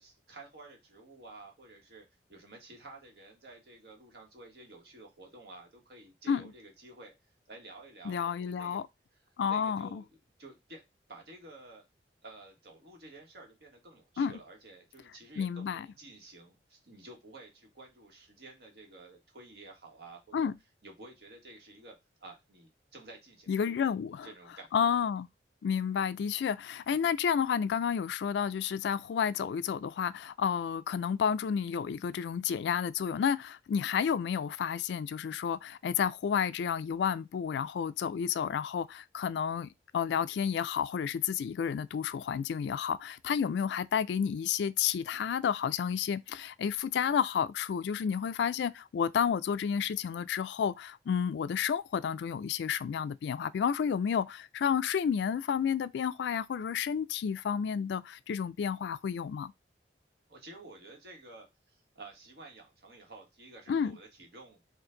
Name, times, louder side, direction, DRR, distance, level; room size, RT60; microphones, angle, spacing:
voice 1, 0.0-2.0 2.3-7.1 7.5-8.8 9.5-10.0 10.4-10.8 11.1-11.8 12.2-20.5 20.8-22.0 22.2-23.9 24.2-24.7 60.3-64.6, right 2 dB, 65° right, 1.4 m, -51 dB
voice 2, 8.0-8.9 9.4-10.0 14.2-14.3 15.4-15.9 20.3-20.5 23.5-24.3 24.7-25.3 25.6-59.5 63.7-64.0, left 7 dB, 75° left, 0.3 m, -31 dB
4.4 x 2.5 x 3.8 m
head